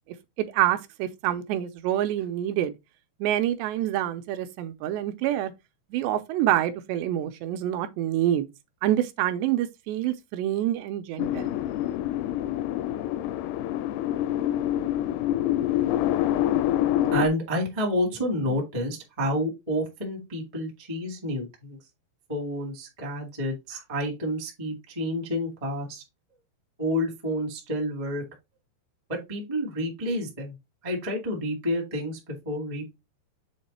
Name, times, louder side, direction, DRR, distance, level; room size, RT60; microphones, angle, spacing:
voice 1, 0.4-2.7 3.2-5.5 5.9-8.5 8.8-11.5, right 12 dB, 80° right, 2.7 m, -26 dB
sound 1, 11.2-17.3, left 12 dB, 85° left, 2.3 m, -26 dB
voice 2, 17.1-21.8 22.3-26.0 26.8-28.2 29.1-30.5 30.8-32.2 32.4-32.9, equal, 35° right, 0.5 m, -29 dB
7.3 x 3.1 x 4.3 m
omnidirectional pair, 5.1 m